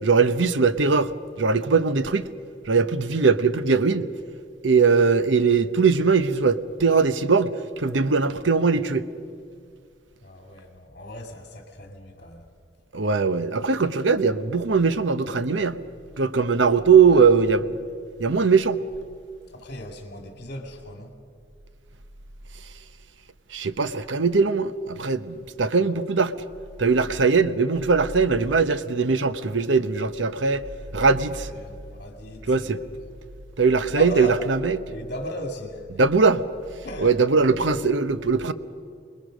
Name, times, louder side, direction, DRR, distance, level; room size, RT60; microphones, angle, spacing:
voice 1, 0.0-1.1 1.4-2.3 2.7-4.1 4.6-9.0 12.9-15.8 16.2-17.8 18.2-18.8 23.5-26.3 26.8-30.6 30.9-31.5 32.5-32.8 33.6-34.8 36.0-36.4 37.0-38.5, right 5 dB, 90° right, 0.8 m, -20 dB
voice 2, 10.2-12.5 17.0-17.2 19.5-21.1 30.9-31.2 31.5-32.7 33.9-34.5 34.9-35.9 36.8-37.2, left 1 dB, 50° left, 2.0 m, -37 dB
26.5 x 20.5 x 6.4 m
head